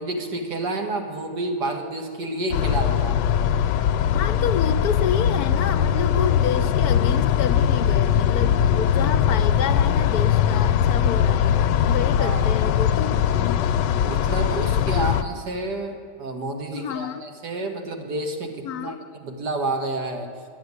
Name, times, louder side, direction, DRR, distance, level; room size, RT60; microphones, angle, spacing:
voice 1, 0.0-3.2 12.2-12.4 14.0-19.0 19.2-20.3, right 2 dB, 75° right, 3 dB, 2.2 m, -29 dB
sound 1, 2.5-15.2, left 9 dB, 85° left, 1.2 m, -21 dB
voice 2, 4.1-11.6 11.9-13.7 14.8-15.1 16.7-17.3 18.6-19.1, left 7 dB, 70° left, 9 dB, 1.1 m, -29 dB
11.0 x 10.0 x 9.6 m, 2.3 s
omnidirectional pair, 1.9 m